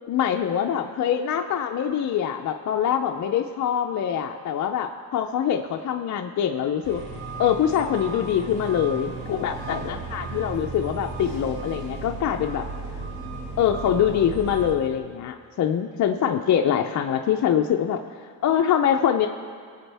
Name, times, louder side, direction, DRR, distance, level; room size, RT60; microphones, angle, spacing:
voice 1, 0.1-7.0 7.4-12.7 13.6-18.0 18.4-19.3, left 9 dB, 55° left, 3 dB, 0.6 m, -24 dB
sound 1, 6.8-14.8, right 3 dB, 80° right, 2.5 m, -35 dB
22.0 x 8.1 x 3.4 m, 2.1 s
cardioid pair, 115°, 36 cm